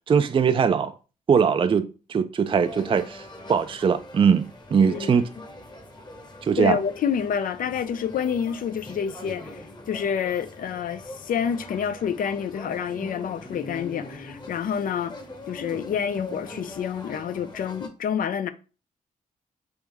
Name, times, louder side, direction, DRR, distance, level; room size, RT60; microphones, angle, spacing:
voice 1, 0.1-0.9 1.3-5.3 6.4-6.8, right 6 dB, 35° right, 0.4 m, -21 dB
sound 1, 2.5-17.9, left 2 dB, 30° left, 1.1 m, -42 dB
voice 2, 4.8-5.1 6.6-15.1 15.5-18.5, left 7 dB, 75° left, 0.5 m, -28 dB
3.5 x 3.1 x 4.7 m
cardioid pair, 70°, 15 cm